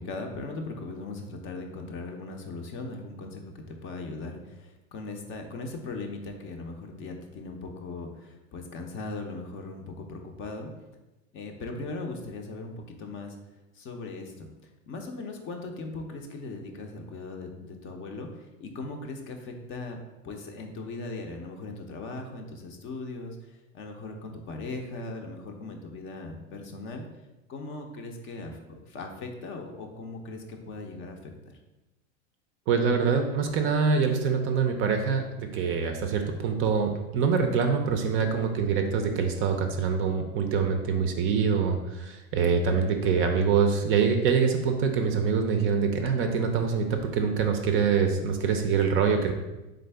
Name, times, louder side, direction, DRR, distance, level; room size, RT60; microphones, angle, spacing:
voice 1, 0.0-10.7 11.3-13.4 13.8-14.5 14.9-20.0 20.2-27.0 27.5-31.5 42.8-43.1, left 3 dB, 30° left, 4 dB, 0.5 m, -39 dB
voice 2, 32.7-49.3, right 6 dB, 35° right, 5 dB, 0.5 m, -25 dB
3.9 x 3.4 x 3.3 m, 1.0 s
hypercardioid pair, 110°, 38 cm